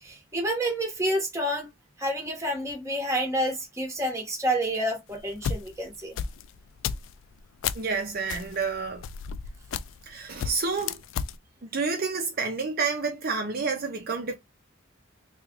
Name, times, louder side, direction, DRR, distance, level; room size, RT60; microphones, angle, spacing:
voice 1, 0.0-1.7 2.0-6.2, right 1 dB, 15° right, 1.1 m, -29 dB
sound 1, 5.1-7.9 8.3-10.1 10.4-11.4, left 7 dB, 70° left, 0.3 m, -33 dB
voice 2, 7.7-9.0 10.1-11.0 11.6-14.3, right 4 dB, 50° right, 0.6 m, -29 dB
3.2 x 2.3 x 3.5 m
head